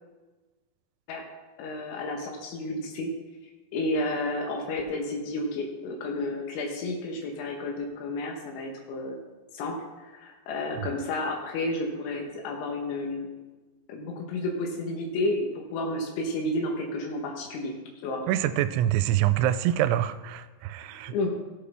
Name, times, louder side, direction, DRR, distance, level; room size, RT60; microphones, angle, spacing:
voice 1, 1.6-3.1 3.7-9.2 9.5-9.8 10.0-13.3 13.9-17.7 18.0-18.2 21.1-21.3, left 2 dB, 85° left, 1 dB, 3.6 m, -31 dB
voice 2, 18.3-21.1, right 12 dB, 85° right, 11 dB, 2.9 m, -25 dB
17.0 x 8.4 x 3.4 m, 1.2 s
omnidirectional pair, 5.3 m